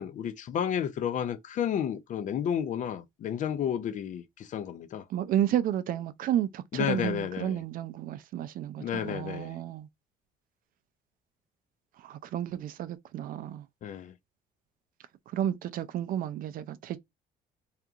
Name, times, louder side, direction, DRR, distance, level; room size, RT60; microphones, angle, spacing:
voice 1, 0.0-5.0 6.7-7.6 8.8-9.5 13.8-14.1, left 9 dB, 50° left, 0.4 m, -31 dB
voice 2, 5.1-9.9 12.0-13.7 15.3-17.0, right 11 dB, 55° right, 0.4 m, -31 dB
2.7 x 2.4 x 2.3 m
cardioid pair, 110°, 17 cm